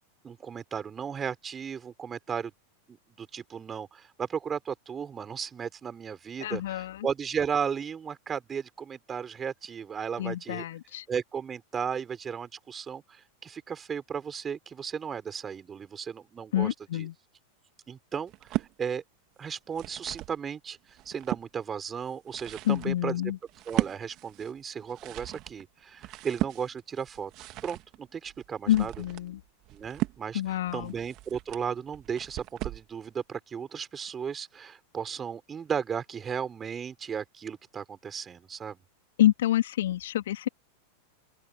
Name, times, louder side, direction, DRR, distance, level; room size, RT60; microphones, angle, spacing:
voice 1, 0.2-2.5 2.9-10.7 11.1-17.1 17.9-19.0 19.4-23.3 23.7-27.3 27.6-28.9 29.7-38.8, right 7 dB, 20° right, 5.4 m, -35 dB
voice 2, 6.4-7.1 10.2-11.0 16.5-17.1 22.6-23.4 28.7-29.4 30.3-30.9 39.2-40.5, left 13 dB, 60° left, 3.3 m, -27 dB
sound 1, 18.3-18.7 19.5-20.4 20.8-21.5 22.1-32.9, right 18 dB, 40° right, 3.0 m, -36 dB
open air
figure-of-eight pair, 90°, 0 cm